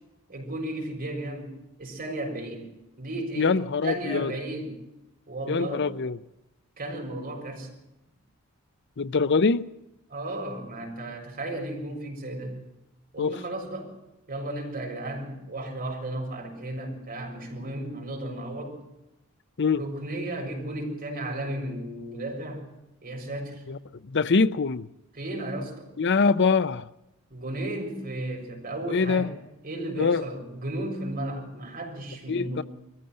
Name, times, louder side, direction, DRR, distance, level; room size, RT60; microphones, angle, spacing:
voice 1, 0.3-1.5 1.8-2.6 3.0-3.5 3.8-4.7 5.3-5.8 6.8-7.7 10.1-12.6 13.1-13.9 14.3-18.8 19.8-22.7 23.0-23.6 25.1-25.9 27.3-29.3 29.6-32.6, right 1 dB, 45° right, 7.0 m, -34 dB
voice 2, 3.4-4.3 5.5-6.2 9.0-9.7 13.2-13.4 19.6-19.8 23.7-23.8 24.0-24.9 26.0-26.9 28.9-29.3 30.0-30.2 32.3-32.6, left 4 dB, 55° left, 0.6 m, -24 dB
22.0 x 15.0 x 7.7 m
head